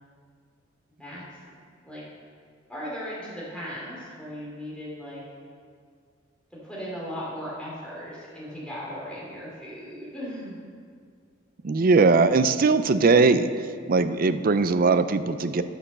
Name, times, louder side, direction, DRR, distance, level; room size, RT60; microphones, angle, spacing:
voice 1, 1.0-1.4 1.8-2.0 2.7-5.2 6.6-10.6, equal, 5° left, -7 dB, 3.0 m, -37 dB
voice 2, 11.6-13.5 13.9-15.6, right 4 dB, 45° right, 11 dB, 0.4 m, -20 dB
10.0 x 6.0 x 6.6 m, 2.1 s
head